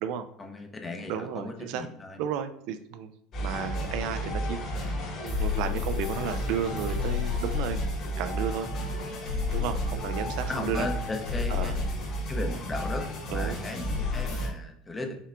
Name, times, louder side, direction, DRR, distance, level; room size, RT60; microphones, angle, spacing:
voice 1, 0.4-2.2 10.1-11.7 12.3-13.0 13.3-15.2, left 3 dB, 15° left, 4 dB, 0.7 m, -36 dB
voice 2, 1.1-1.9 2.2-3.1 3.4-4.6 5.2-7.8 8.2-8.7 9.5-10.9 11.5-11.8 13.3-13.6, right 8 dB, 65° right, 9 dB, 0.4 m, -33 dB
sound 1, 3.3-14.5, left 2 dB, 40° left, 1.8 m, -31 dB
5.5 x 3.5 x 2.4 m, 0.71 s
cardioid pair, 140°, 0 cm